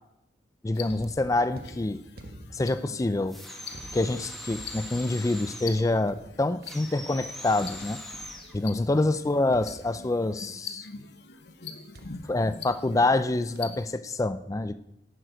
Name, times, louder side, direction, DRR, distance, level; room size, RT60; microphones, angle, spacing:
voice 1, 0.6-2.0 2.5-3.4 3.9-8.0 8.5-10.9 12.3-14.7, left 2 dB, 20° left, 12 dB, 0.4 m, -26 dB
sound 1, 0.7-13.9, left 6 dB, 65° left, 1.0 m, -45 dB
sound 2, 0.8-8.8 9.5-10.5 11.9-13.2 13.5-13.9, right 1 dB, 55° right, 1.2 m, -49 dB
sound 3, 3.3-5.9 6.6-8.5, left 1 dB, ahead, 1.6 m, -42 dB
11.0 x 9.0 x 5.1 m, 0.84 s
head